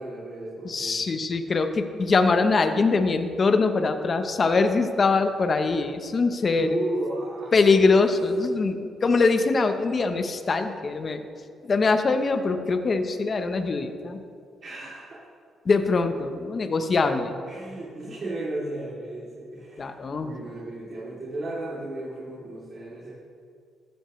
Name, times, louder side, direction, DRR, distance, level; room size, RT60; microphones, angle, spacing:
voice 1, 0.0-1.0 6.5-7.6 14.6-15.2 17.5-23.1, right 2 dB, 50° right, -8 dB, 3.1 m, -34 dB
voice 2, 0.6-6.7 7.5-11.2 11.6-14.2 15.6-17.4 19.8-20.3, left 4 dB, 40° left, 8 dB, 0.9 m, -23 dB
13.5 x 12.5 x 3.2 m, 2.3 s
cardioid pair, 90°, 0 cm